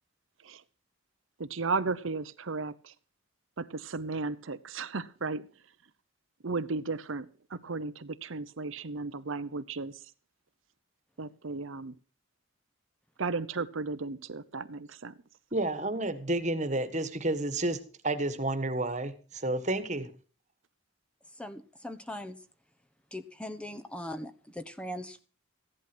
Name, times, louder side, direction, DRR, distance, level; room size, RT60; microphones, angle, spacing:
voice 1, 1.4-2.9 3.6-5.5 6.4-10.0 11.2-11.9 13.2-15.2, right 4 dB, 75° right, 0.8 m, -35 dB
voice 2, 15.5-17.8 18.0-20.1, right 2 dB, 35° right, 1.6 m, -30 dB
voice 3, 21.4-22.4 23.1-25.2, left 1 dB, 5° left, 1.0 m, -40 dB
15.5 x 11.0 x 6.1 m
head